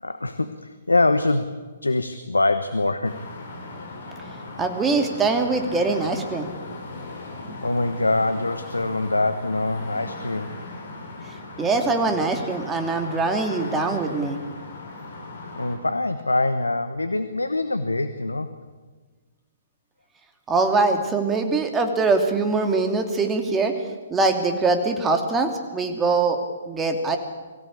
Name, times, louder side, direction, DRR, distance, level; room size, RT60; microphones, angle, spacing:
voice 1, 0.0-3.2 7.6-10.5 15.6-18.5, left 2 dB, 85° left, 11 dB, 1.2 m, -24 dB
sound 1, 3.0-15.8, left 2 dB, 60° left, 6.1 m, -38 dB
voice 2, 4.6-6.5 11.6-14.4 20.5-23.7 24.1-26.4 26.7-27.2, right 3 dB, 15° right, 5 dB, 2.6 m, -22 dB
23.5 x 16.0 x 8.6 m, 1.4 s
figure-of-eight pair, 125°, 0 cm